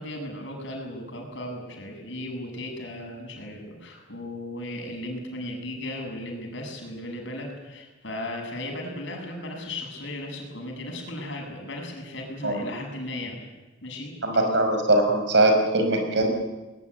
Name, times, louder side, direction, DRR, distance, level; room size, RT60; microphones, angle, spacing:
voice 1, 0.0-13.4 13.8-14.1, left 1 dB, 65° left, 2 dB, 7.1 m, -36 dB
voice 2, 14.2-16.3, right 2 dB, 60° right, 5 dB, 5.5 m, -21 dB
21.0 x 19.5 x 9.8 m, 1.2 s
head